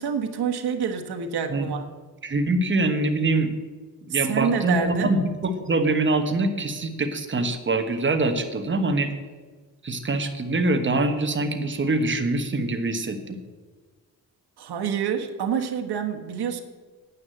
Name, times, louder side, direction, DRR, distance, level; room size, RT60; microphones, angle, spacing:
voice 1, 0.0-1.9 4.1-5.1 14.6-16.6, right 7 dB, 85° right, 5 dB, 1.4 m, -27 dB
voice 2, 2.2-3.5 4.1-9.1 9.8-13.4, right 2 dB, 30° right, 6 dB, 1.3 m, -24 dB
9.6 x 9.5 x 7.8 m, 1.4 s
wide cardioid pair, 145°, 38 cm